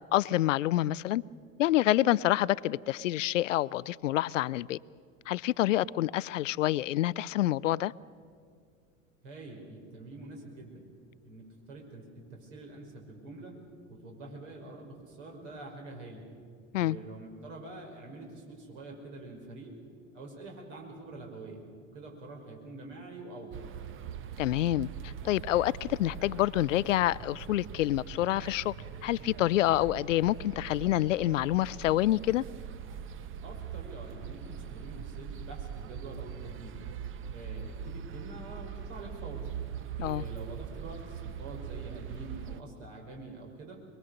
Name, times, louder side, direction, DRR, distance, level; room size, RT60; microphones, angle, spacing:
voice 1, 0.1-1.2 1.6-4.8 5.3-7.9 16.7-17.0 24.4-28.7 29.0-32.4 40.0-40.2, left 14 dB, 70° left, 21 dB, 0.5 m, -27 dB
voice 2, 9.2-10.9 11.2-13.6 13.9-16.3 16.8-19.8 20.1-23.6 33.4-36.8 37.3-39.5 40.0-43.9, right 2 dB, 65° right, 1 dB, 5.4 m, -46 dB
sound 1, 23.5-42.6, right 8 dB, 30° right, 0.9 m, -42 dB
22.5 x 22.0 x 6.5 m, 2.2 s
figure-of-eight pair, 85°, 39 cm